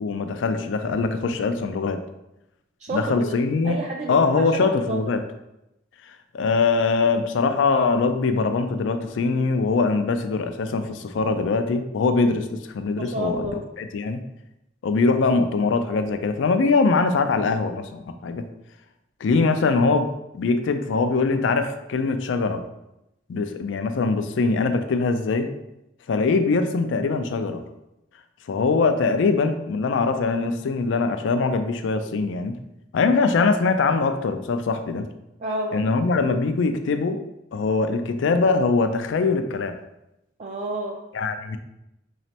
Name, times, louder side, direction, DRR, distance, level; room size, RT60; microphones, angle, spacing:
voice 1, 0.0-2.0 2.9-3.8 4.1-5.2 6.3-13.5 13.8-14.2 14.8-18.4 19.2-22.6 23.3-25.5 26.1-27.6 28.5-32.6 32.9-35.1 35.7-37.2 37.5-39.8 41.1-41.6, left 4 dB, 80° left, 8 dB, 0.4 m, -22 dB
voice 2, 2.8-3.3 3.6-5.0 13.0-13.6 35.4-35.7 40.4-41.0, right 2 dB, 40° right, -1 dB, 0.3 m, -30 dB
4.0 x 3.1 x 2.8 m, 0.89 s
head